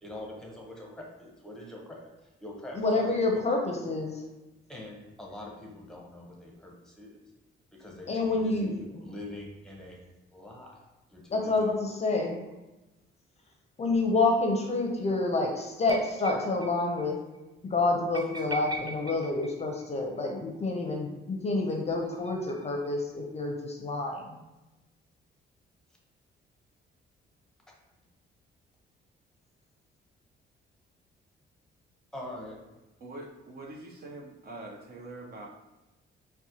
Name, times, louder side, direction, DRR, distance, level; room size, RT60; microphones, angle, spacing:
voice 1, 0.0-2.1 2.4-3.4 4.7-7.2 7.8-10.0 10.3-10.8 11.1-11.7 32.1-32.6, left 1 dB, 5° left, -2 dB, 0.9 m, -44 dB
voice 2, 2.7-4.2 8.1-9.1 11.3-12.4 13.8-17.2 17.6-24.4, left 3 dB, 35° left, 2 dB, 0.5 m, -28 dB
sound 1, 15.9-16.7 17.0-17.1 17.3-17.4 18.1-20.2 21.7-22.9, right 2 dB, 20° right, 0.4 m, -41 dB
voice 3, 33.0-35.5, right 2 dB, 50° right, 0 dB, 0.7 m, -44 dB
4.1 x 2.2 x 2.8 m, 1.0 s
cardioid pair, 90°, 20 cm